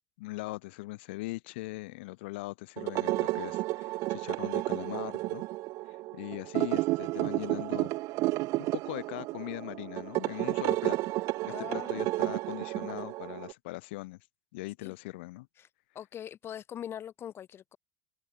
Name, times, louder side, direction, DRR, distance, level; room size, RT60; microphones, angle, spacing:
voice 1, 0.2-5.4 5.9-7.9 8.6-11.1 11.6-14.2 14.5-15.5, left 22 dB, 85° left, 1.7 m, -40 dB
sound 1, 2.8-13.5, right 20 dB, 65° right, 1.1 m, -32 dB
voice 2, 11.5-12.2 14.8-14.9 15.6-15.7 15.9-17.8, left 10 dB, 45° left, 2.7 m, -42 dB
supercardioid pair, 100°, 6 cm